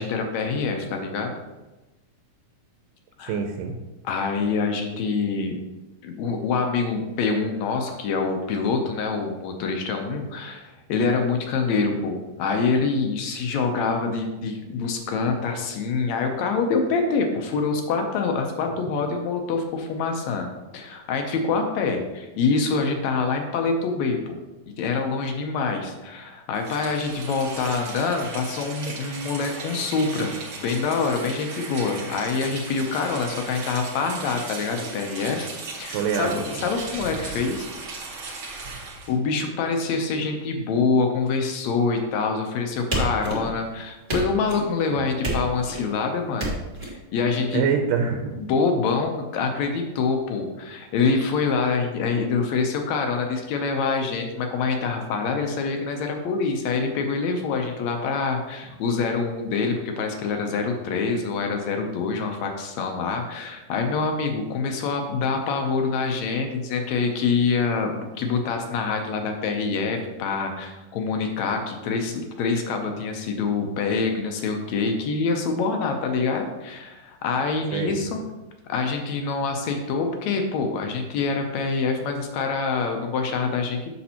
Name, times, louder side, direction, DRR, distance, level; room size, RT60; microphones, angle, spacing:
voice 1, 0.0-1.4 3.2-3.4 4.0-5.6 6.0-24.4 24.8-30.3 30.6-35.5 35.8-37.7 39.1-46.5 46.8-47.6 48.4-78.2 78.7-83.9, left 4 dB, 75° left, 4 dB, 1.7 m, -25 dB
voice 2, 3.3-3.8 35.9-36.4 44.9-45.0 47.5-48.4 77.7-78.0, right 6 dB, 90° right, 4 dB, 2.2 m, -25 dB
Rain, 26.5-39.1, right 3 dB, 55° right, 1.6 m, -37 dB
sound 1, 42.9-43.7 44.1-44.7 45.2-45.9 46.4-46.9, right 1 dB, 30° right, 0.8 m, -28 dB
8.3 x 6.4 x 2.9 m, 1.1 s
omnidirectional pair, 3.8 m